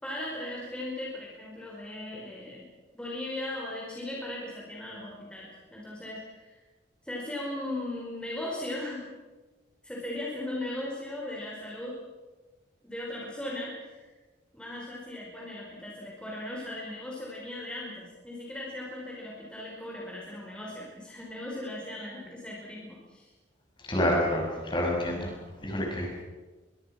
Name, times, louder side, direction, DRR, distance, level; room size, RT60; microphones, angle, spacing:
voice 1, 0.0-2.7 2.9-6.6 7.0-9.1 9.8-11.9 12.8-14.1 14.5-23.3, left 1 dB, 5° left, -4 dB, 4.9 m, -38 dB
voice 2, 23.9-25.3 25.6-26.2, left 1 dB, 25° left, 0 dB, 6.2 m, -28 dB
25.0 x 23.0 x 5.9 m, 1.2 s
head